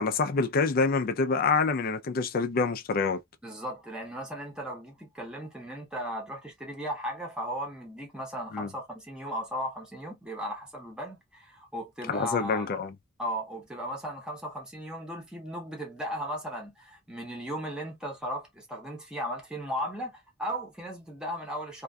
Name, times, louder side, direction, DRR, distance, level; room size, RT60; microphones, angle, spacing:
voice 1, 0.0-3.2 8.5-8.7 12.1-12.9, left 4 dB, 50° left, 0.4 m, -26 dB
voice 2, 3.4-12.7 13.2-21.8, equal, 5° right, 0.7 m, -36 dB
2.5 x 2.2 x 2.2 m
head